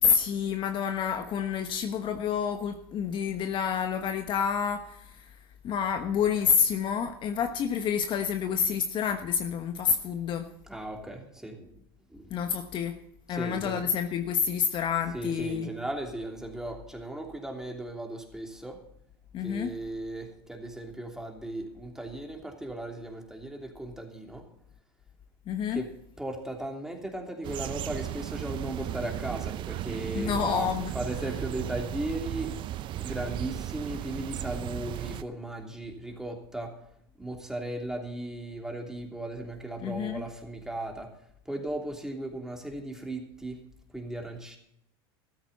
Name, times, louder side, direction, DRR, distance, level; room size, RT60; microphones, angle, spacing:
voice 1, 0.0-5.3 5.6-10.5 12.3-13.0 13.3-15.7 19.3-19.7 25.5-25.8 30.1-30.9 39.8-40.2, left 7 dB, 40° left, 7 dB, 1.2 m, -28 dB
voice 2, 10.7-11.8 12.1-12.4 13.3-13.8 15.1-18.8 19.4-24.4 25.7-25.9 26.2-30.7 30.9-32.5 33.0-36.7 37.2-41.1 41.5-43.6 43.9-44.6, right 1 dB, 5° right, 1 dB, 3.0 m, -36 dB
sound 1, 27.4-35.2, right 13 dB, 40° right, 0.6 m, -35 dB
14.0 x 13.5 x 4.1 m, 0.74 s
hypercardioid pair, 105°, 13 cm